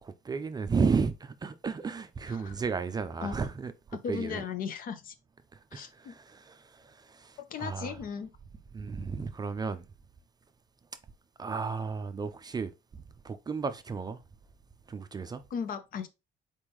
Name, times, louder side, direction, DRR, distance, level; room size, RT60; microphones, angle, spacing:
voice 1, 0.0-4.4 5.5-8.1 8.7-9.9 11.4-12.7 13.2-14.2 14.9-15.4, right 5 dB, 25° right, 0.4 m, -33 dB
voice 2, 4.0-5.1 5.7-6.1 7.5-8.3 15.5-16.1, left 6 dB, 55° left, 0.7 m, -36 dB
4.4 x 3.5 x 3.0 m
cardioid pair, 110°, 17 cm